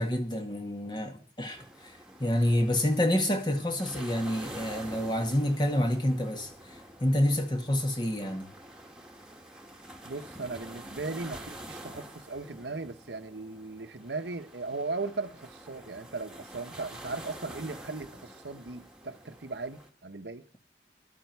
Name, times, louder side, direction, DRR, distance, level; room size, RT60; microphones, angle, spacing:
voice 1, 0.0-1.9 2.2-8.5, left 1 dB, 25° left, 2.0 m, -28 dB
sound 1, 1.5-19.9, right 1 dB, 5° right, 2.1 m, -47 dB
voice 2, 10.0-20.4, right 3 dB, 80° right, 1.1 m, -37 dB
18.5 x 12.5 x 4.7 m
head